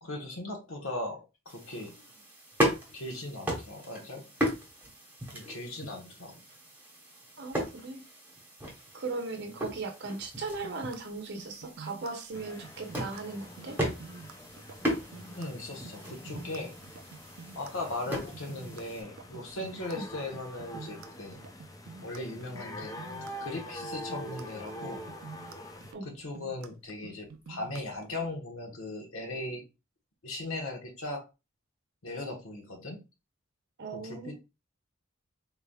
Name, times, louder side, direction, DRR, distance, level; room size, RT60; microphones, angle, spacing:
voice 1, 0.0-2.1 2.9-4.3 5.3-6.4 9.4-9.5 15.4-16.7 17.5-21.4 22.0-22.9 23.2-25.0 26.0-29.6 30.2-31.3 32.0-33.0 33.9-34.3, left 2 dB, 80° left, 2 dB, 1.2 m, -38 dB
sound 1, 1.5-19.0, equal, 10° right, 1.0 m, -37 dB
voice 2, 7.4-8.0 8.9-13.8 19.9-20.1 25.9-26.1 33.8-34.3, right 3 dB, 55° right, 3 dB, 0.8 m, -38 dB
sound 2, 10.4-28.3, right 4 dB, 85° right, 0.5 m, -48 dB
sound 3, 12.3-25.9, left 1 dB, 15° left, 0.4 m, -45 dB
3.9 x 3.4 x 2.3 m, 0.27 s
head